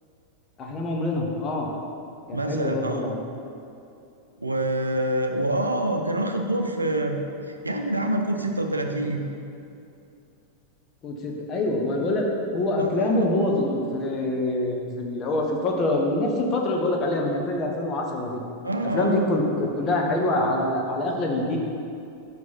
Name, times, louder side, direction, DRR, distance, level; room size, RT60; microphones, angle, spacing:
voice 1, 0.6-1.7 2.3-3.2 11.0-12.3 12.5-18.4 18.9-21.6, left 2 dB, 30° left, 0 dB, 1.0 m, -25 dB
voice 2, 2.3-3.1 4.4-7.2 7.5-9.2 12.8-13.3 18.6-19.3, right 1 dB, 80° right, 4 dB, 0.5 m, -26 dB
5.8 x 4.7 x 5.7 m, 2.7 s
figure-of-eight pair, 90°, 0 cm